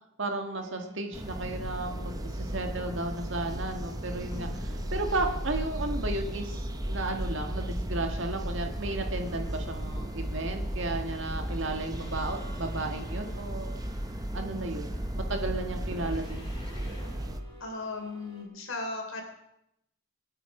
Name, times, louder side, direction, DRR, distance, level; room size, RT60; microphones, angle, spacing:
voice 1, 0.2-13.7 14.3-16.4, right 2 dB, 65° right, 4 dB, 1.8 m, -34 dB
sound 1, 0.6-18.4, equal, 20° left, 4.8 m, -43 dB
sound 2, 1.1-17.4, right 1 dB, 20° right, 0.9 m, -35 dB
voice 2, 17.6-19.2, left 3 dB, 75° left, 2 dB, 3.7 m, -36 dB
27.5 x 9.2 x 4.9 m, 0.82 s
head